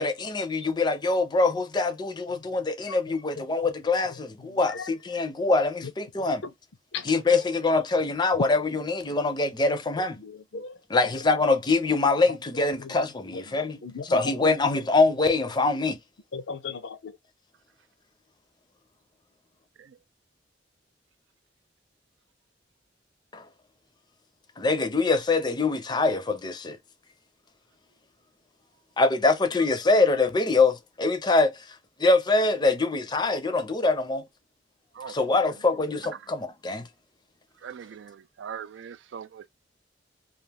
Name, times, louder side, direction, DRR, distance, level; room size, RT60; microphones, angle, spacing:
voice 1, 0.0-6.4 7.0-10.2 10.9-13.8 14.1-16.0 23.3-23.4 24.6-26.8 29.0-34.2 35.1-36.9, left 3 dB, 25° left, 0.5 m, -24 dB
voice 2, 2.9-3.2 3.6-3.7 4.1-4.9 5.8-5.9 6.2-6.5 6.9-7.1 7.4-7.5 10.0-11.1 12.7-13.0 13.3-14.6 16.3-17.2, left 5 dB, 80° left, 0.6 m, -39 dB
voice 3, 37.6-39.5, right 8 dB, 80° right, 0.4 m, -41 dB
2.4 x 2.4 x 3.3 m
head